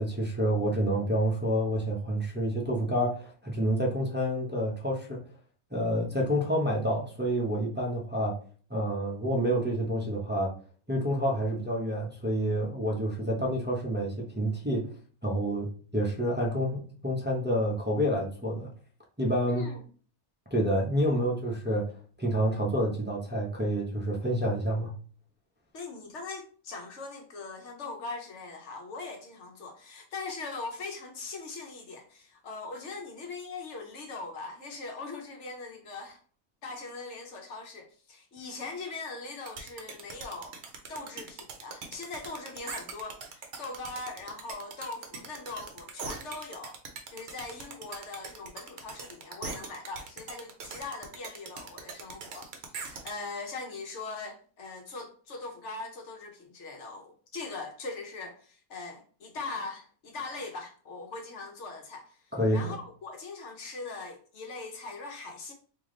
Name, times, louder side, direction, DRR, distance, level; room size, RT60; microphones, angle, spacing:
voice 1, 0.0-5.2 5.7-8.4 8.7-10.5 10.9-14.9 15.2-18.7 19.2-19.6 20.5-24.9 62.4-62.7, equal, 15° right, 0.4 m, -28 dB
voice 2, 19.5-19.8 21.2-21.3 25.7-36.2 36.6-40.6 40.9-46.8 47.1-65.5, left 3 dB, 60° left, 1.0 m, -41 dB
sound 1, 39.5-53.1, right 5 dB, 60° right, 0.9 m, -41 dB
3.3 x 2.8 x 3.7 m
omnidirectional pair, 1.5 m